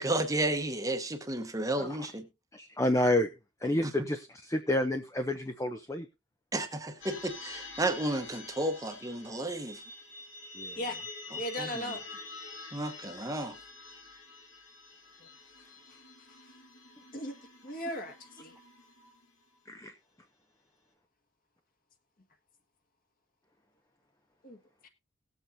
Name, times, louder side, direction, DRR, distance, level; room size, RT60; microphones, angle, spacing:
voice 1, 0.0-2.3 3.8-4.1 6.5-9.8 11.3-11.9 12.7-13.6, right 1 dB, 15° right, 1.0 m, -33 dB
voice 2, 2.5-3.3 3.6-6.1 10.5-10.8 19.7-19.9, left 1 dB, 15° left, 0.6 m, -29 dB
sound 1, 7.0-19.5, left 3 dB, 75° left, 4.5 m, -47 dB
voice 3, 11.4-12.0 15.2-15.3 17.1-17.4 17.6-18.6 24.4-24.9, equal, 45° left, 1.7 m, -37 dB
19.0 x 7.9 x 2.7 m
head